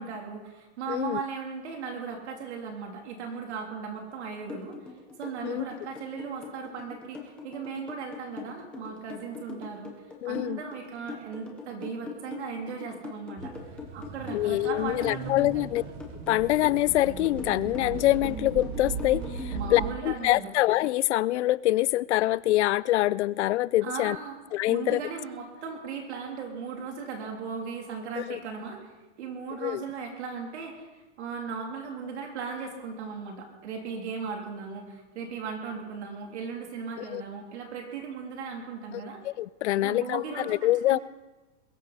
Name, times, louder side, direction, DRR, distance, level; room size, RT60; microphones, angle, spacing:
voice 1, 0.0-4.8 5.2-9.9 10.2-13.5 13.9-15.7 19.5-20.5 23.8-24.4 24.7-39.2 39.7-41.0, right 5 dB, 65° right, 2 dB, 3.2 m, -37 dB
voice 2, 0.9-1.2 5.4-5.6 10.2-10.6 14.3-15.8 16.3-24.2 24.5-25.0 28.2-28.4 29.6-29.8 37.1-37.2 38.9-41.0, left 16 dB, 65° left, 21 dB, 0.5 m, -25 dB
sound 1, 4.5-19.9, left 5 dB, 5° left, 0.4 m, -41 dB
sound 2, 13.4-19.9, right 5 dB, 25° right, 1.3 m, -38 dB
22.0 x 13.5 x 4.1 m, 1.1 s
supercardioid pair, 175°, 37 cm